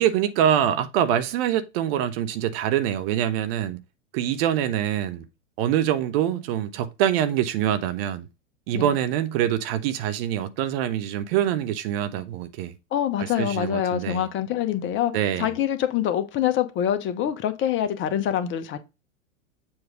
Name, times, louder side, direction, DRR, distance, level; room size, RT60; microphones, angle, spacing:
voice 1, 0.0-3.8 4.1-5.3 5.6-8.3 8.7-12.8 13.2-14.3 15.1-15.5, right 10 dB, 50° right, 0.9 m, -25 dB
voice 2, 12.9-18.8, left 10 dB, 30° left, 0.9 m, -25 dB
7.2 x 3.1 x 5.0 m
hypercardioid pair, 105°, 39 cm